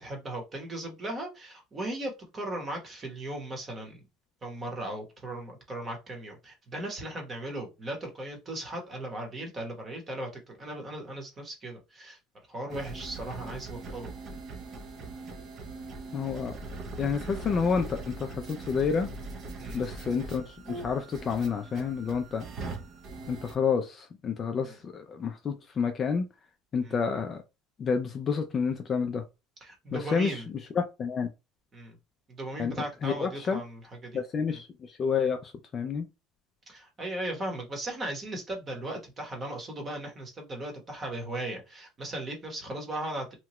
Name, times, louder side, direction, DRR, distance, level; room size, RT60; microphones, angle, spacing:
voice 1, 0.0-4.0 4.4-12.2 12.5-14.1 19.6-19.8 24.6-24.8 26.8-27.0 29.6-30.5 31.7-32.0 32.3-34.2 34.5-34.6 36.7-43.4, right 1 dB, 20° right, 0.9 m, -37 dB
sound 1, 12.7-23.5, right 3 dB, 35° right, 0.5 m, -41 dB
voice 2, 16.1-16.6 17.0-19.1 19.7-22.4 23.3-26.3 26.7-27.4 27.8-29.2 29.9-31.3 32.6-32.8 33.0-33.6 34.1-36.1, left 6 dB, 25° left, 0.3 m, -29 dB
2.9 x 2.3 x 2.9 m
cardioid pair, 165°, 0 cm